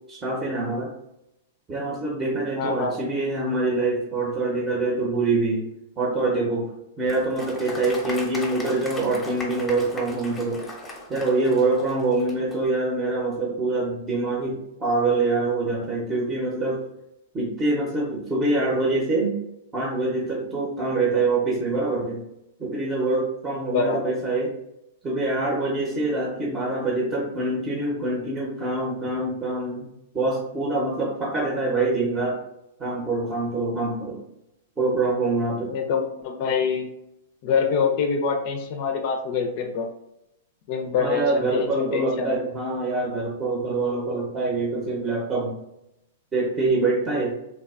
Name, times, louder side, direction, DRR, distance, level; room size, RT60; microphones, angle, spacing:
voice 1, 0.1-0.9 1.7-5.7 6.0-6.7 7.0-10.6 11.1-16.9 17.3-19.4 19.7-22.2 22.6-24.5 25.0-29.9 30.1-32.4 32.8-34.2 34.8-35.7 41.0-45.6 46.3-47.3, right 2 dB, 20° right, -3 dB, 0.7 m, -25 dB
voice 2, 2.6-3.1 23.7-24.0 35.7-36.9 37.4-39.9 40.7-42.4, left 5 dB, 50° left, 4 dB, 0.4 m, -25 dB
Applause, 7.1-12.6, left 2 dB, 15° left, 0.7 m, -38 dB
3.2 x 2.2 x 2.4 m, 0.85 s
hypercardioid pair, 125°, 0 cm